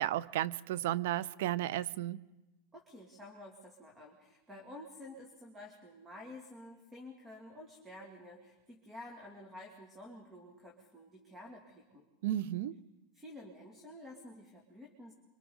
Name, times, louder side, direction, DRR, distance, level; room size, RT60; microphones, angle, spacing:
voice 1, 0.0-2.2 12.2-12.8, right 13 dB, 70° right, 0.6 m, -33 dB
voice 2, 2.7-12.0 13.1-15.1, left 1 dB, 15° right, 2.4 m, -51 dB
28.0 x 24.5 x 4.0 m
supercardioid pair, 135°, 0 cm